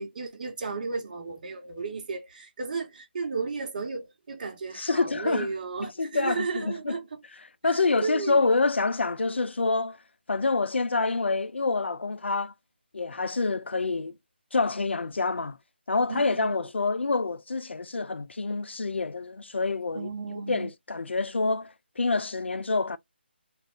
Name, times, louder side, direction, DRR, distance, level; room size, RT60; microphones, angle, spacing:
voice 1, 0.0-7.0 8.0-8.4 16.1-16.6 19.9-20.7, right 4 dB, 45° right, 1.0 m, -34 dB
voice 2, 4.7-5.5 5.8-7.0 7.6-10.0 10.3-12.5 12.9-14.1 14.5-15.6 15.9-23.0, left 3 dB, 85° left, 0.4 m, -27 dB
2.6 x 2.4 x 3.4 m
figure-of-eight pair, 155°, 6 cm